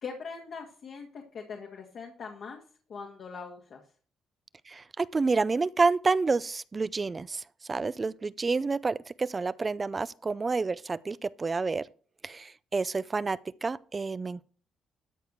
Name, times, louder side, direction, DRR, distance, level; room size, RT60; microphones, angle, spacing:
voice 1, 0.0-2.6 2.9-3.8, left 5 dB, 60° left, 1.9 m, -41 dB
voice 2, 4.7-7.4 7.7-11.9 12.2-14.4, right 4 dB, 30° right, 0.5 m, -29 dB
13.0 x 4.8 x 6.7 m
cardioid pair, 90°, 0 cm